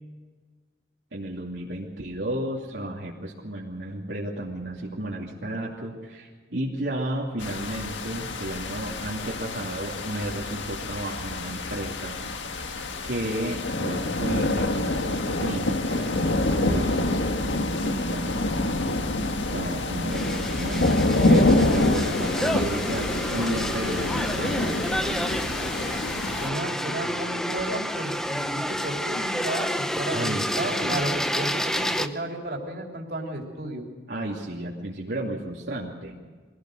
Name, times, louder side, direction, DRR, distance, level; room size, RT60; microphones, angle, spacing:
voice 1, 1.1-12.2 13.0-17.2 17.6-18.5 19.5-25.3 30.1-31.1 34.1-36.1, right 1 dB, 70° right, -4 dB, 2.7 m, -33 dB
sound 1, 7.4-26.5, left 2 dB, 85° left, 1.7 m, -26 dB
sound 2, 20.1-32.1, equal, 5° left, 0.8 m, -29 dB
voice 2, 26.4-33.9, right 1 dB, 55° right, 0 dB, 3.7 m, -33 dB
24.0 x 17.0 x 6.6 m, 1.4 s
head